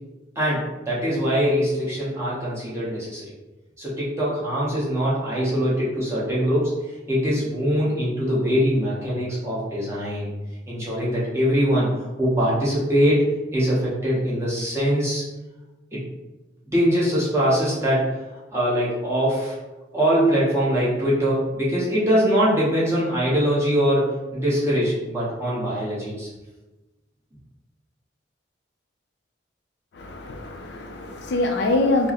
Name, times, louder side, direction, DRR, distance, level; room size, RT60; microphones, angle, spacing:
voice 1, 0.3-3.2 3.8-6.7 7.1-10.3 10.7-11.9 12.2-13.2 13.5-15.2 15.9-16.0 16.7-18.2 18.5-19.6 19.9-26.3, equal, 15° right, -8 dB, 0.9 m, -22 dB
voice 2, 29.9-32.1, left 2 dB, 60° left, 4 dB, 0.4 m, -24 dB
4.5 x 2.0 x 2.9 m, 1.1 s
head